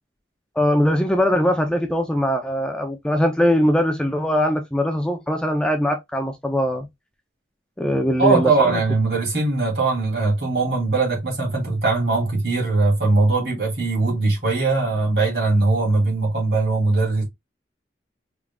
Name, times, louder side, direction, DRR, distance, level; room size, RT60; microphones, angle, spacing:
voice 1, 0.6-6.9 7.8-8.5, equal, 5° left, 0.4 m, -21 dB
voice 2, 8.2-17.2, right 3 dB, 60° right, 2.7 m, -20 dB
4.8 x 3.7 x 2.2 m
head